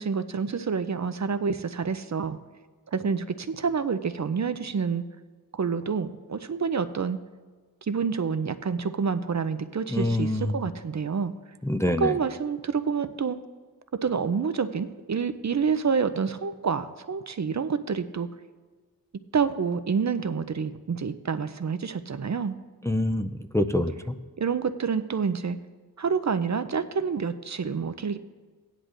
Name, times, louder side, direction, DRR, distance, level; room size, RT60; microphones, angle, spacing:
voice 1, 0.0-2.4 2.9-5.0 5.5-7.2 7.9-11.3 12.0-13.4 13.9-18.3 19.3-22.5 24.4-25.6 26.0-28.2, right 6 dB, 50° right, 11 dB, 0.5 m, -28 dB
voice 2, 9.9-10.5 11.6-12.1 22.8-24.1, left 1 dB, 10° left, 8 dB, 0.4 m, -26 dB
16.0 x 10.0 x 2.5 m, 1.4 s
wide cardioid pair, 65°, 37 cm